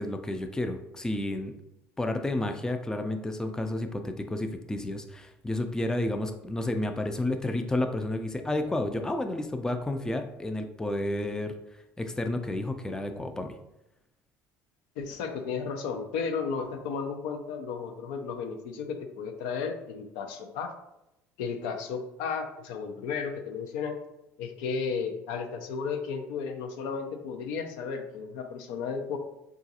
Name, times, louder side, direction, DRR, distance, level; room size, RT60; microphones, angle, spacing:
voice 1, 0.0-1.5 2.0-11.5 12.0-13.5, left 1 dB, 10° left, 6 dB, 0.3 m, -31 dB
voice 2, 15.0-20.7 21.4-24.0 24.4-29.2, left 5 dB, 75° left, 5 dB, 0.4 m, -34 dB
3.8 x 2.4 x 2.7 m, 0.89 s
hypercardioid pair, 70°, 8 cm